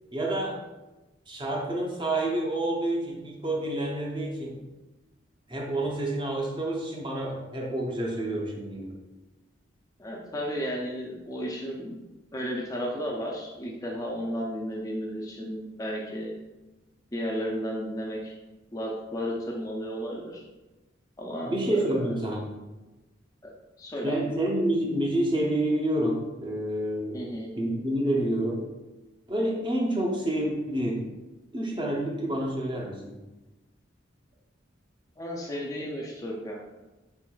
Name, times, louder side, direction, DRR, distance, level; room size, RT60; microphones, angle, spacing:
voice 1, 0.1-0.6 1.3-4.6 5.5-8.9 21.4-22.5 24.0-27.3 27.6-28.7 29.3-31.0 31.5-33.2, right 1 dB, 25° right, -1 dB, 0.6 m, -28 dB
voice 2, 10.0-12.0 12.3-16.3 17.1-18.3 18.7-20.4 21.2-22.1 23.4-23.5 23.8-24.2 27.1-27.5 35.2-36.6, equal, 20° left, -2 dB, 0.4 m, -33 dB
4.4 x 4.1 x 2.3 m, 1.1 s
head